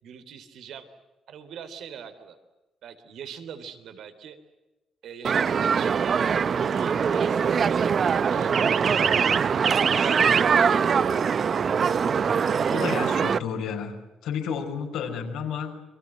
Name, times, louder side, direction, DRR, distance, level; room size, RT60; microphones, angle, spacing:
voice 1, 0.0-0.9 1.3-2.4 2.8-4.4 5.0-6.2 6.7-9.1 9.6-11.1, right 7 dB, 75° right, 11 dB, 3.6 m, -42 dB
sound 1, 5.2-13.4, right 6 dB, 50° right, 0.9 m, -22 dB
voice 2, 12.7-14.0 14.2-15.8, left 7 dB, 85° left, 2 dB, 5.5 m, -31 dB
29.0 x 24.0 x 7.8 m, 1.0 s
cardioid pair, 90°, 0 cm